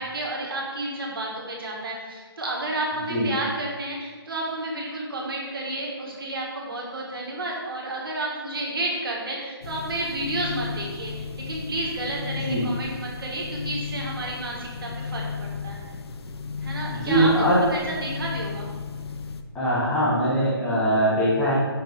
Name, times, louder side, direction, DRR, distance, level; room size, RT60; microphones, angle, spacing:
voice 1, 0.0-15.8 16.6-18.7, right 2 dB, 60° right, -3 dB, 1.7 m, -31 dB
sound 1, 9.6-19.4, left 5 dB, 80° left, 0.5 m, -35 dB
voice 2, 16.9-17.6 19.5-21.5, equal, 5° left, -9 dB, 0.6 m, -21 dB
5.8 x 5.1 x 3.5 m, 1.5 s
hypercardioid pair, 175°, 13 cm